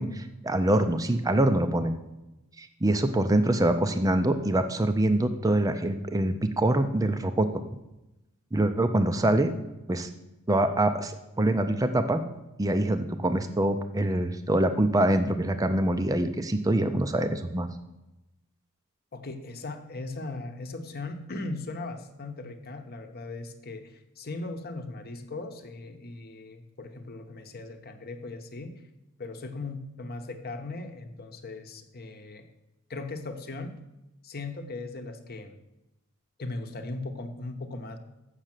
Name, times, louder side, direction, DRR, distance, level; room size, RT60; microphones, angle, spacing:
voice 1, 0.0-2.0 2.6-7.5 8.5-9.5 9.9-10.1 10.5-12.2 12.6-17.7, right 1 dB, 15° right, 8 dB, 0.5 m, -25 dB
voice 2, 19.1-28.7 29.2-32.5 32.9-33.8 34.2-35.6 36.4-38.0, left 2 dB, 45° left, 6 dB, 1.0 m, -38 dB
7.4 x 6.6 x 7.5 m, 0.97 s
head